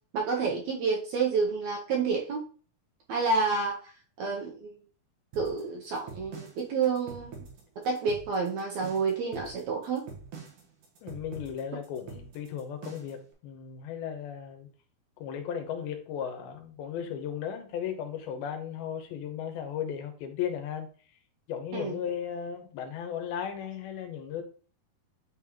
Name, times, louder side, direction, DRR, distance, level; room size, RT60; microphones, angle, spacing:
voice 1, 0.1-2.4 3.1-4.7 5.3-7.3 7.8-10.1 21.7-22.0, right 4 dB, 80° right, 1.6 m, -29 dB
sound 1, 5.3-13.3, right 5 dB, 60° right, 2.6 m, -45 dB
voice 2, 11.0-14.7 15.2-20.9 21.5-24.4, left 8 dB, 90° left, 2.8 m, -36 dB
9.0 x 3.8 x 3.0 m
omnidirectional pair, 4.3 m